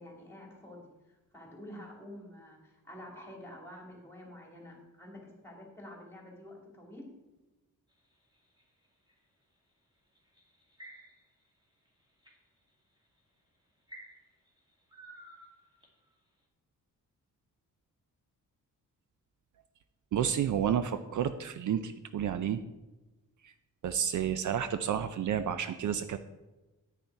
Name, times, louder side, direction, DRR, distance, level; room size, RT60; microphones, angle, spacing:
voice 1, 0.0-7.1, left 1 dB, 5° left, 0 dB, 2.6 m, -49 dB
sound 1, 7.9-9.2 10.1-11.4 11.8-12.4 13.0-13.2 13.9-16.1, right 1 dB, 15° right, 2.3 m, -53 dB
voice 2, 20.1-22.6 23.4-23.5 23.8-26.2, right 9 dB, 60° right, 11 dB, 0.5 m, -30 dB
9.4 x 9.1 x 4.6 m, 1.1 s
wide cardioid pair, 155°, 34 cm